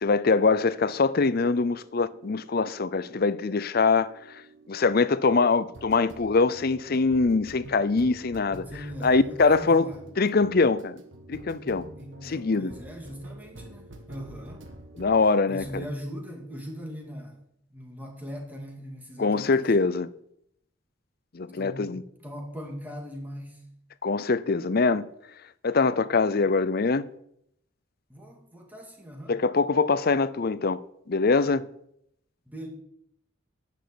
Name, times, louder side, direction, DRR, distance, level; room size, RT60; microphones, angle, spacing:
voice 1, 0.0-4.4 4.7-8.7 9.0-9.9 10.2-11.0 11.3-11.9 12.2-12.7 15.0-15.8 19.2-20.1 21.3-22.0 24.0-25.1 25.6-27.1 29.3-30.8 31.1-31.6, left 4 dB, 45° left, 0.5 m, -23 dB
sound 1, 1.0-15.2 15.6-15.9, right 1 dB, 60° right, 1.6 m, -47 dB
voice 2, 8.7-10.0 12.0-14.7 15.5-17.4 17.7-19.8 21.6-23.6 28.1-29.4 32.5-32.7, equal, 10° right, 2.0 m, -40 dB
10.0 x 7.3 x 8.3 m
head